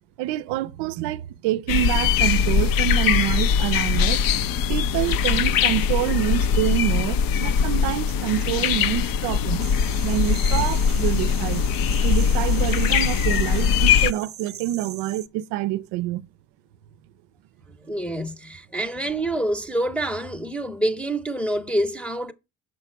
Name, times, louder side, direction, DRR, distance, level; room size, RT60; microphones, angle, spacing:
voice 1, 0.2-4.3 4.7-9.7 10.0-11.7 12.0-16.2, right 14 dB, 75° right, 0.5 m, -26 dB
sound 1, 1.7-14.1, left 7 dB, 55° left, 0.6 m, -21 dB
sound 2, 9.6-15.3, right 10 dB, 40° right, 0.8 m, -41 dB
voice 2, 17.8-22.3, right 1 dB, 5° left, 0.7 m, -26 dB
6.6 x 5.8 x 4.5 m
supercardioid pair, 70°, 42 cm